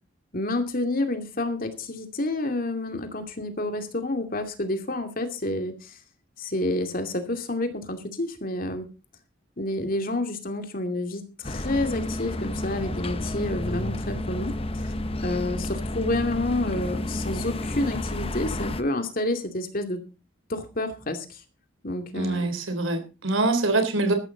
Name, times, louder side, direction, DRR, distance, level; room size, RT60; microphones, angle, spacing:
voice 1, 0.3-5.9 6.4-8.9 9.6-14.9 15.2-20.0 20.5-21.4 21.8-22.5, left 2 dB, 45° left, 6 dB, 2.5 m, -29 dB
sound 1, 11.4-18.8, left 1 dB, 30° left, 0.9 m, -31 dB
voice 2, 22.2-24.1, right 2 dB, 85° right, 7 dB, 3.5 m, -24 dB
14.5 x 13.5 x 4.0 m, 0.31 s
head